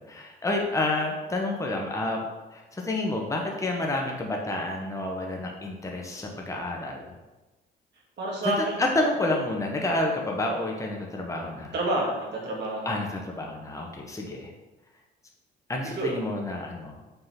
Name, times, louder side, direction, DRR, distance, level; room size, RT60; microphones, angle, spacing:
voice 1, 0.0-2.2 2.5-7.1 8.4-11.7 12.8-14.5 15.7-17.0, left 2 dB, 15° left, 0 dB, 1.1 m, -29 dB
voice 2, 8.2-8.8 11.7-13.0 15.9-16.1, right 2 dB, 60° right, -4 dB, 2.1 m, -28 dB
5.6 x 3.8 x 5.9 m, 1.1 s
cardioid pair, 90°, 20 cm